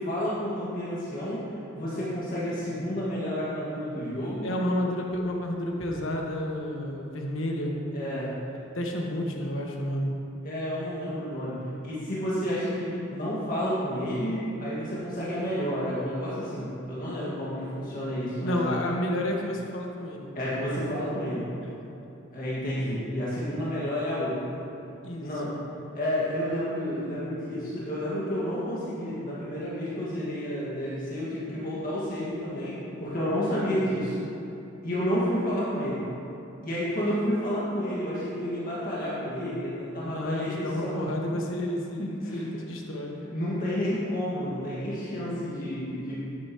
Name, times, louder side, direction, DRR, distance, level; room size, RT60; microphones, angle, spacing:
voice 1, 0.0-4.5 7.9-8.3 10.4-18.8 20.3-21.5 22.3-24.5 25.2-25.5 25.9-32.7 33.0-34.2 34.8-36.0 36.6-40.9 41.3-41.4 42.0-42.6 43.3-46.1, equal, 45° left, -9 dB, 1.8 m, -30 dB
voice 2, 4.4-7.8 8.8-10.1 18.4-20.3 21.6-21.8 25.0-25.3 40.0-43.2, left 1 dB, 80° left, 0 dB, 1.3 m, -30 dB
10.5 x 9.3 x 3.0 m, 2.8 s
head